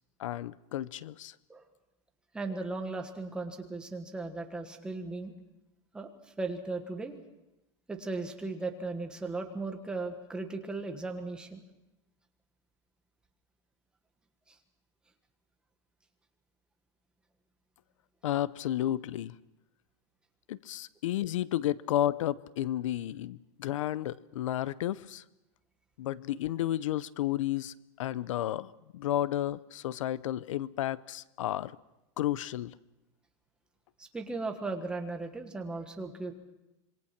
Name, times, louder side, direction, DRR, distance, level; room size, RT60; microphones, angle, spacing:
voice 1, 0.2-1.4 18.2-19.4 20.5-25.2 26.0-31.7 32.2-32.7, left 13 dB, 80° left, 19 dB, 0.7 m, -32 dB
voice 2, 2.3-5.3 5.9-6.1 6.4-7.2 7.9-11.6 14.5-14.6 34.0-36.3, right 3 dB, 5° right, 4 dB, 1.4 m, -37 dB
26.5 x 23.0 x 5.9 m, 0.93 s
supercardioid pair, 175°, 16 cm